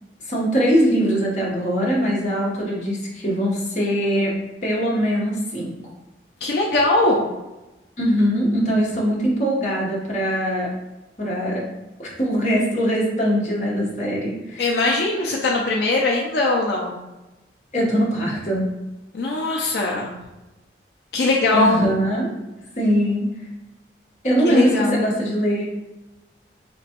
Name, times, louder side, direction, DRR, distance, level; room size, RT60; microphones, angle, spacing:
voice 1, 0.3-4.4 4.6-5.7 8.0-10.7 11.2-11.6 12.0-14.6 17.7-18.7 21.5-22.3 22.8-23.2 24.2-25.7, equal, 40° left, -4 dB, 1.0 m, -21 dB
voice 2, 6.4-7.3 14.6-17.0 19.1-20.1 21.1-21.8 24.5-25.0, left 2 dB, 70° left, -2 dB, 0.5 m, -20 dB
4.3 x 2.9 x 2.9 m, 1.0 s
head